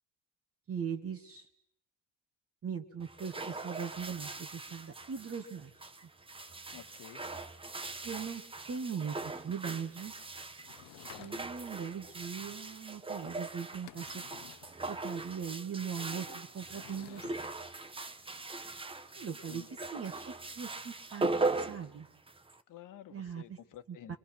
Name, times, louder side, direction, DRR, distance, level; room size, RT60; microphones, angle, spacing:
voice 1, 0.7-1.5 2.6-5.9 8.0-8.4 8.7-10.1 11.2-14.2 14.9-17.3 19.2-19.6 19.9-22.1 23.1-23.4 24.1-24.2, right 7 dB, 35° right, 3 dB, 1.8 m, -40 dB
sound 1, 3.0-22.6, right 3 dB, 15° right, 1.0 m, -40 dB
voice 2, 6.7-7.2 19.5-19.8 22.7-24.2, left 11 dB, 55° left, 10 dB, 1.5 m, -51 dB
Sliding door / Wood, 10.6-11.8 13.3-13.4 13.6-14.8 16.5-17.5, left 16 dB, 75° left, 0.8 m, -53 dB
29.0 x 23.0 x 6.1 m, 0.78 s
cardioid pair, 100°, 38 cm